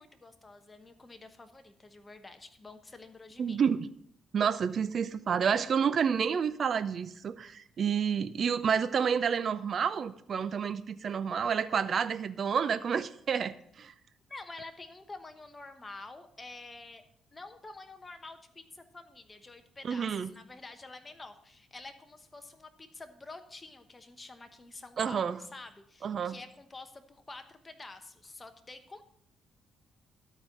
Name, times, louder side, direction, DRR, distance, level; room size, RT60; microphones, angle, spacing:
voice 1, 0.0-3.6 14.3-17.0 17.3-29.0, left 3 dB, 25° left, 7 dB, 1.0 m, -48 dB
voice 2, 3.4-3.9 4.3-13.9 19.8-20.3 25.0-25.4 26.0-26.4, right 7 dB, 50° right, 13 dB, 0.5 m, -29 dB
12.5 x 4.6 x 6.6 m, 0.68 s
cardioid pair, 90°, 0 cm